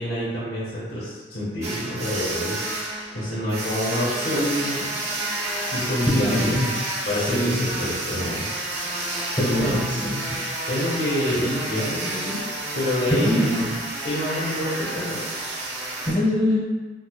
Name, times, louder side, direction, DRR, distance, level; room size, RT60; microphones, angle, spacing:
voice 1, 0.0-4.9 5.7-6.7 7.0-8.5 8.9-9.2 9.5-9.8 10.3-10.4 10.7-12.4 12.7-13.5 14.0-15.2, left 1 dB, 70° left, -14 dB, 1.3 m, -27 dB
sound 1, 1.6-16.1, right 2 dB, 35° right, 0.7 m, -30 dB
voice 2, 6.1-6.7 7.0-7.9 9.4-10.2 13.1-13.8 16.1-16.6, left 1 dB, 25° left, -8 dB, 0.8 m, -23 dB
5.4 x 2.0 x 2.3 m, 1.3 s
head